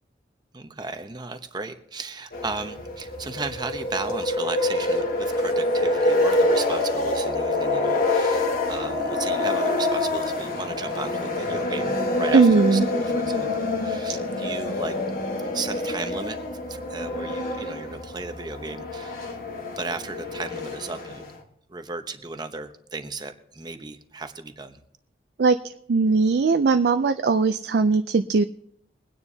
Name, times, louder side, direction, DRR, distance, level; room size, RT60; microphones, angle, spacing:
voice 1, 0.5-13.5 13.8-15.0 15.5-16.4 16.7-19.2 19.8-21.3 21.7-24.8, right 3 dB, 25° right, 8 dB, 0.8 m, -35 dB
sound 1, 2.3-21.4, left 2 dB, 50° left, 1.4 m, -26 dB
voice 2, 12.3-12.8 25.4-25.6 25.9-28.4, right 4 dB, 60° right, 9 dB, 0.4 m, -19 dB
23.0 x 9.7 x 2.8 m, 0.72 s
head